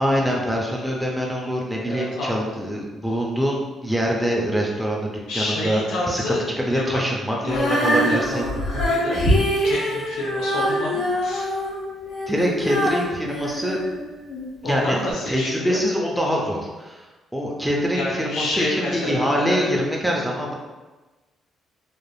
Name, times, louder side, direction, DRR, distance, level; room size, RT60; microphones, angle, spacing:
voice 1, 0.0-5.8 6.1-8.5 12.3-13.8 14.6-15.0 15.2-17.0 17.3-20.5, equal, ahead, -2 dB, 0.6 m, -24 dB
voice 2, 1.9-2.5 5.3-6.4 6.7-7.6 8.0-9.2 9.6-11.5 14.6-15.8 17.9-19.7, left 1 dB, 85° left, -4 dB, 0.8 m, -29 dB
Female singing, 7.4-14.5 15.1-15.2, equal, 65° left, 1.2 m, -24 dB
3.3 x 2.5 x 2.4 m, 1.2 s
cardioid pair, 80°, 0 cm